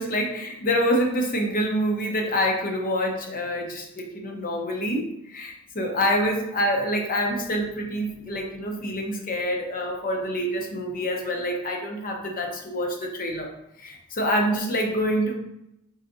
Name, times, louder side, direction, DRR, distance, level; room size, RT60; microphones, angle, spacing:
voice 1, 0.0-5.0 5.3-13.5 13.8-15.3, equal, 40° left, 2 dB, 0.6 m, -26 dB
4.0 x 3.4 x 2.6 m, 0.82 s
head